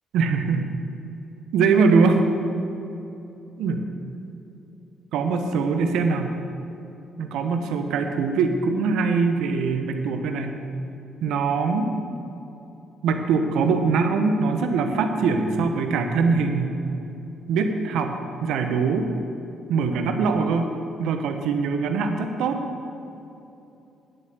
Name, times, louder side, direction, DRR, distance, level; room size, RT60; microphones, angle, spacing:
voice 1, 0.1-0.7 1.5-2.3 3.6-3.8 5.1-6.4 7.2-10.6 11.2-11.9 13.0-16.7 17.5-19.1 19.7-20.7 21.0-22.6, right 4 dB, 80° right, 6 dB, 1.1 m, -22 dB
10.5 x 7.5 x 8.1 m, 2.9 s
supercardioid pair, 65°, 0 cm